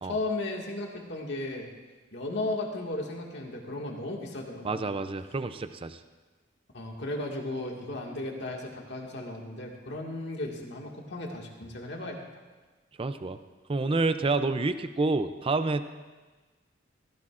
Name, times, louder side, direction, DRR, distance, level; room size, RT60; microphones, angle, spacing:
voice 1, 0.0-1.7 2.1-4.9 6.7-12.2, left 2 dB, 60° left, 0 dB, 1.9 m, -35 dB
voice 2, 4.6-6.0 13.0-13.4 13.7-15.9, right 3 dB, 30° right, 11 dB, 0.5 m, -28 dB
16.5 x 16.0 x 2.5 m, 1.3 s
head